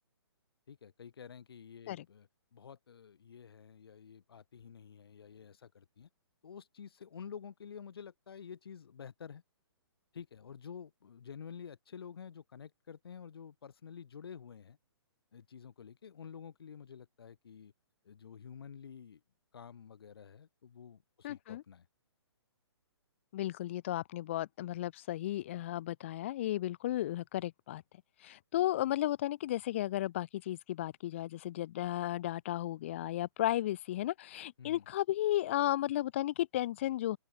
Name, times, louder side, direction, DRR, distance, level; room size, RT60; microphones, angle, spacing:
voice 1, 0.7-6.1 6.4-9.4 10.1-14.8 15.3-17.7 18.0-19.2 19.5-21.9 34.6-34.9, left 7 dB, 60° left, 4.3 m, -50 dB
voice 2, 21.2-21.6 23.3-27.8 28.2-37.2, left 14 dB, 25° left, 0.9 m, -34 dB
open air
hypercardioid pair, 170°, 14 cm